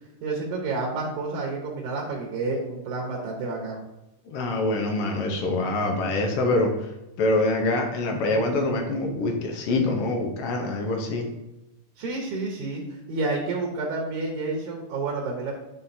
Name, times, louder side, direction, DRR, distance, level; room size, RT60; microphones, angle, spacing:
voice 1, 0.2-3.8 12.0-15.5, right 3 dB, 70° right, -1 dB, 2.3 m, -30 dB
voice 2, 4.3-6.9 7.2-11.3, left 2 dB, 75° left, 2 dB, 1.3 m, -25 dB
10.0 x 3.8 x 2.7 m, 0.95 s
omnidirectional pair, 3.7 m